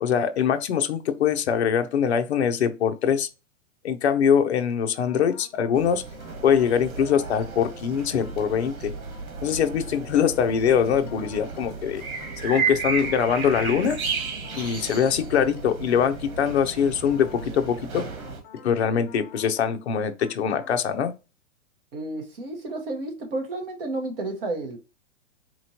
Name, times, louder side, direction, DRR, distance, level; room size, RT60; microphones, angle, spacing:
voice 1, 0.0-3.3 3.8-6.0 6.4-8.9 9.4-12.0 12.4-14.0 14.5-18.0 18.6-21.1, left 7 dB, 50° left, 0.6 m, -23 dB
sound 1, 5.1-5.8 6.2-6.8 7.1-7.8 8.2-8.8 9.1-16.2 16.6-19.8 20.2-20.8, left 4 dB, 35° left, 1.3 m, -50 dB
sound 2, 5.7-18.4, right 5 dB, 80° right, 1.5 m, -33 dB
voice 2, 21.9-24.8, right 2 dB, 40° right, 1.1 m, -31 dB
4.3 x 3.0 x 2.7 m
hypercardioid pair, 180°, 42 cm